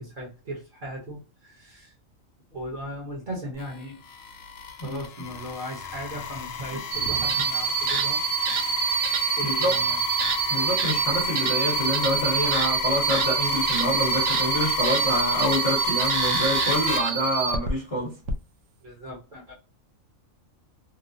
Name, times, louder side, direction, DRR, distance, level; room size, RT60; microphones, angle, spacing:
voice 1, 0.0-1.9 2.5-4.0 4.8-8.2 9.3-10.0 18.8-19.5, right 1 dB, 40° right, -3 dB, 1.0 m, -37 dB
sound 1, 3.6-17.0, left 6 dB, 65° left, 0.7 m, -31 dB
sound 2, 6.9-17.7 18.2-18.3, right 7 dB, 70° right, 0.8 m, -26 dB
voice 2, 9.4-9.7 10.5-18.1, equal, 30° left, -3 dB, 0.8 m, -27 dB
3.0 x 2.0 x 2.6 m, 0.32 s
omnidirectional pair, 1.4 m